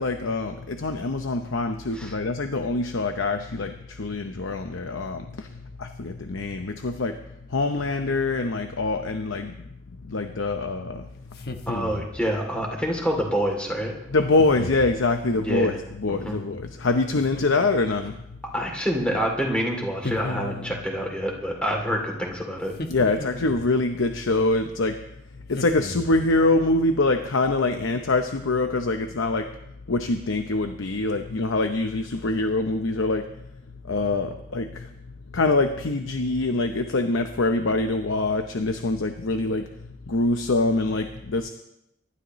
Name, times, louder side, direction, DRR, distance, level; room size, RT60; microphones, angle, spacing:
voice 1, 0.0-5.5 5.8-7.2 7.5-9.5 10.1-11.1 14.1-18.2 22.9-25.0 25.5-29.5 29.9-33.3 33.8-34.9 35.3-39.7 40.1-41.5, left 2 dB, 85° left, 6 dB, 0.8 m, -24 dB
sound 1, 11.3-12.2 14.4-15.0 17.1-17.9 20.0-20.9 22.7-23.7 25.5-26.3, left 2 dB, 50° left, 1.2 m, -35 dB
voice 2, 11.7-13.9 15.4-15.8 16.1-16.4 18.5-22.7, equal, 5° left, 0 dB, 2.9 m, -27 dB
23.5 x 13.0 x 3.1 m, 0.83 s
head